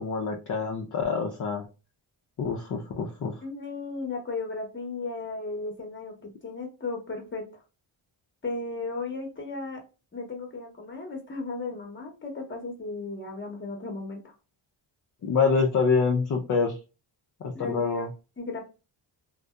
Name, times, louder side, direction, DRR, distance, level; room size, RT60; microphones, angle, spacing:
voice 1, 0.0-1.7 2.4-3.3 15.2-16.8 17.4-18.1, left 5 dB, 40° left, 2 dB, 0.5 m, -26 dB
voice 2, 3.4-6.1 6.4-7.6 8.4-9.8 10.1-14.3 17.5-18.0 18.4-18.6, left 3 dB, 25° left, 2 dB, 0.8 m, -35 dB
2.6 x 2.1 x 2.2 m, 0.31 s
cardioid pair, 90°, 49 cm